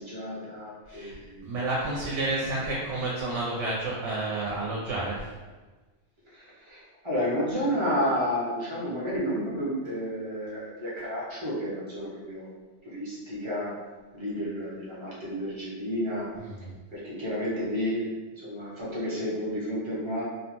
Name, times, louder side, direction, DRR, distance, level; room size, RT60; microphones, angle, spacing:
voice 1, 0.0-1.5 6.3-12.5 12.8-13.7 14.1-16.3 16.9-18.1 18.4-20.2, equal, 30° right, -7 dB, 0.6 m, -31 dB
voice 2, 1.4-5.3 16.4-16.7, right 2 dB, 70° right, -5 dB, 0.9 m, -30 dB
2.7 x 2.1 x 2.9 m, 1.3 s
omnidirectional pair, 1.3 m